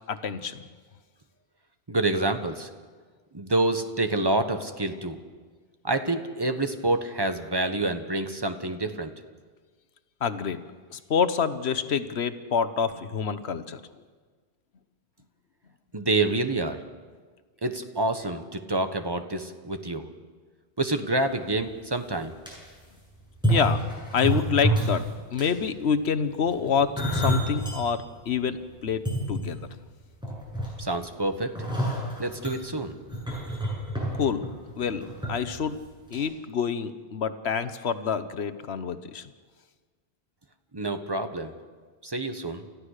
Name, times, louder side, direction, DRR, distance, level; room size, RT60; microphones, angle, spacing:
voice 1, 0.1-0.6 10.2-10.6 10.9-13.8 23.5-23.8 24.1-25.0 25.3-29.0 29.3-29.6 34.2-34.4 34.8-35.8 36.1-39.3, left 6 dB, 85° left, 12 dB, 1.3 m, -27 dB
voice 2, 1.9-2.7 3.3-5.2 5.8-9.1 15.9-16.8 17.6-20.1 20.8-22.3 30.8-31.5 32.2-32.9 40.7-41.5 42.0-42.6, right 2 dB, 25° right, 8 dB, 1.2 m, -27 dB
sound 1, 21.6-21.7 22.1-22.5 23.3-25.0 25.3-25.6 26.5-27.8 28.3-28.4 28.9-29.9 30.2-31.0 31.5-35.3 35.6-35.8 36.1-36.2, right 1 dB, 5° right, 8.0 m, -28 dB
29.0 x 14.5 x 6.6 m, 1.5 s
omnidirectional pair, 1.1 m